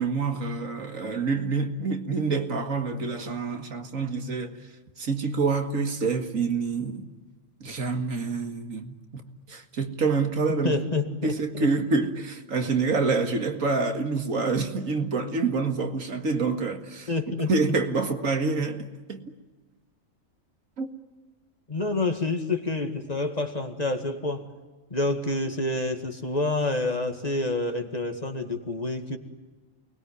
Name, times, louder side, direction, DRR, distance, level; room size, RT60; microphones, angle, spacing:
voice 1, 0.0-4.6 5.0-7.1 7.6-10.8 11.2-17.1 17.5-19.2 20.8-20.9, right 4 dB, 80° right, 2.3 m, -27 dB
voice 2, 10.5-11.7 17.1-17.5 21.7-24.5 24.9-29.2, left 2 dB, 30° left, 2.2 m, -28 dB
29.0 x 21.0 x 9.6 m
omnidirectional pair, 1.4 m